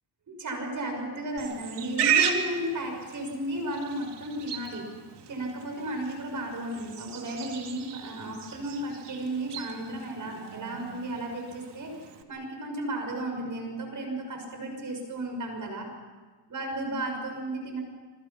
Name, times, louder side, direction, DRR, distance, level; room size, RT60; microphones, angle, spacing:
voice 1, 0.3-4.9 5.3-11.9 12.3-15.9 16.5-17.8, right 1 dB, 45° right, 3 dB, 6.8 m, -34 dB
Livestock farm animals working animals, 1.4-12.2, right 8 dB, 70° right, 2.4 m, -34 dB
27.0 x 26.0 x 5.9 m, 1.4 s
cardioid pair, 115°, 42 cm